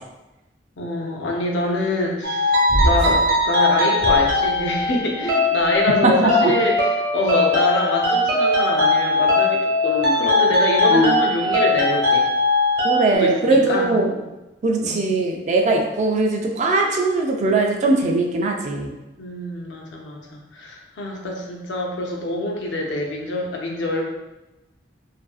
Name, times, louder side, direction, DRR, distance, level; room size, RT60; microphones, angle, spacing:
voice 1, 0.8-6.9 7.1-12.3 13.1-14.0 14.8-15.0 19.2-24.0, left 2 dB, 85° left, 0 dB, 0.5 m, -25 dB
sound 1, 2.2-13.2, left 2 dB, 55° right, 0.8 m, -20 dB
sound 2, 2.7-3.4 4.0-4.9, right 1 dB, 85° right, 0.8 m, -24 dB
voice 2, 12.8-14.1 14.6-19.0, right 2 dB, 40° right, 2 dB, 0.3 m, -20 dB
2.6 x 2.5 x 2.3 m, 1.0 s
head